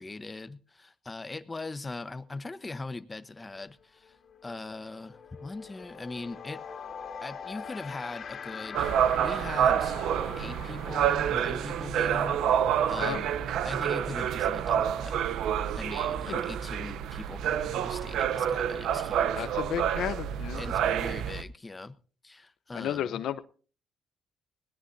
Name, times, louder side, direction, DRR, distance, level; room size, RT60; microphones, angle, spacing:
voice 1, 0.0-6.6 7.2-8.9 9.2-9.9 10.4-12.4 12.9-13.3 13.6-15.2 15.8-19.5 20.5-21.9 22.2-23.2, left 3 dB, 20° left, 1.0 m, -40 dB
sound 1, 3.6-3.7 4.0-14.6, left 6 dB, 55° left, 2.6 m, -44 dB
sound 2, 8.7-21.4, right 9 dB, 80° right, 0.8 m, -28 dB
voice 2, 19.3-20.6 22.7-23.4, left 10 dB, 80° left, 0.8 m, -33 dB
20.5 x 18.0 x 2.7 m
cardioid pair, 90°, 0 cm